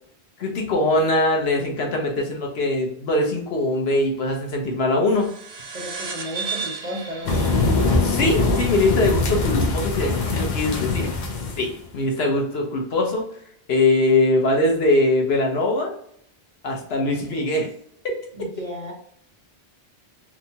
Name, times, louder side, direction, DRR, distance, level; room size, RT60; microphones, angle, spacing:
voice 1, 0.4-5.3 8.0-11.1 11.6-13.2 13.7-15.9 16.6-17.7, left 2 dB, 75° left, 0 dB, 1.0 m, -22 dB
sound 1, 5.1-10.1, right 5 dB, 75° right, 0.9 m, -35 dB
voice 2, 5.7-7.5 18.3-18.9, equal, 45° right, -1 dB, 0.6 m, -34 dB
sound 2, 7.3-11.7, left 3 dB, 55° left, 0.6 m, -22 dB
2.9 x 2.3 x 2.7 m, 0.67 s
omnidirectional pair, 1.1 m